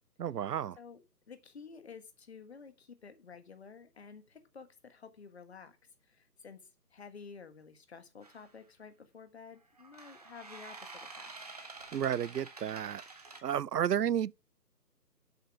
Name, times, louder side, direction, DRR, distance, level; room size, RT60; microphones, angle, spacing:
voice 1, 0.2-0.8 11.9-13.0 13.4-14.3, right 9 dB, 70° right, 0.5 m, -32 dB
voice 2, 0.8-5.8 6.0-11.3, left 5 dB, 40° left, 1.5 m, -52 dB
sound 1, 8.2-8.5 9.8-13.4, right 3 dB, 25° right, 0.9 m, -49 dB
7.9 x 6.7 x 7.7 m
figure-of-eight pair, 155°, 50 cm